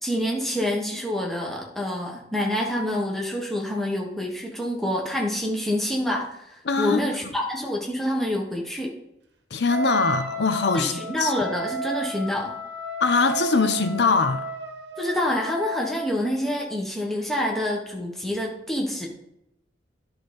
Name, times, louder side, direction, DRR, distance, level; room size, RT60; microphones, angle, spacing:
voice 1, 0.0-8.9 10.7-12.6 15.0-19.1, left 1 dB, ahead, 1.2 m, -27 dB
voice 2, 6.6-7.0 9.5-11.3 13.0-14.5, left 4 dB, 65° left, 0.6 m, -22 dB
Wind instrument woodwind instrument, 9.7-16.3, right 2 dB, 70° right, 1.0 m, -33 dB
10.5 x 3.9 x 5.2 m
head